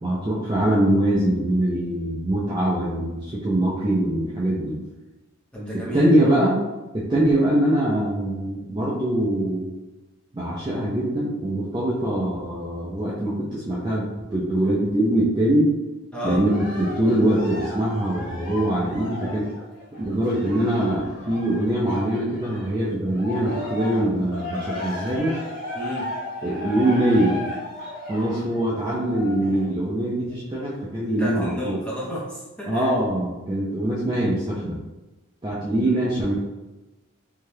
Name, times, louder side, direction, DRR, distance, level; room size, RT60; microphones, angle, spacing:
voice 1, 0.0-4.8 5.7-6.6 6.9-9.7 10.3-15.7 16.2-19.5 20.0-25.4 26.4-27.5 28.1-31.8 32.7-34.8 35.4-36.3, right 1 dB, 20° right, -7 dB, 0.3 m, -23 dB
voice 2, 5.5-6.1 16.1-16.4 25.7-26.1 31.1-32.9 35.8-36.1, equal, 5° left, -7 dB, 0.7 m, -32 dB
Cheering, 16.4-22.7 23.1-29.7 30.3-30.4, left 1 dB, 40° left, 0.8 m, -35 dB
2.7 x 2.3 x 3.2 m, 1.1 s
head